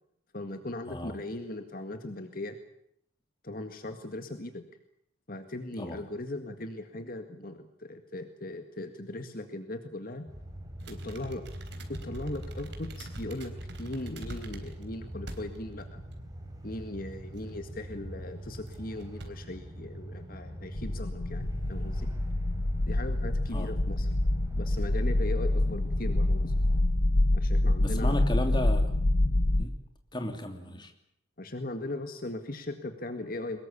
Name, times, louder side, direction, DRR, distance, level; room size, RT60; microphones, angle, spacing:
voice 1, 0.3-2.6 3.4-4.6 5.3-10.3 10.9-11.5 11.9-16.0 16.6-22.1 22.9-24.1 24.6-26.5 27.3-28.3 31.4-33.6, left 1 dB, 50° left, 7 dB, 1.9 m, -38 dB
voice 2, 0.9-1.2 5.8-6.0 23.5-23.7 27.8-28.8 29.6-29.7 30.1-30.9, left 1 dB, 25° left, 6 dB, 2.9 m, -34 dB
sound 1, 10.3-26.8, right 1 dB, 20° right, 3.8 m, -43 dB
sound 2, 10.8-14.8 15.3-15.8 16.1-16.2 17.3-17.8 18.5-18.7 19.0-19.3, right 1 dB, 60° right, 3.9 m, -43 dB
sound 3, 20.8-29.7, left 1 dB, 75° left, 1.2 m, -26 dB
23.5 x 21.0 x 8.7 m, 0.72 s
head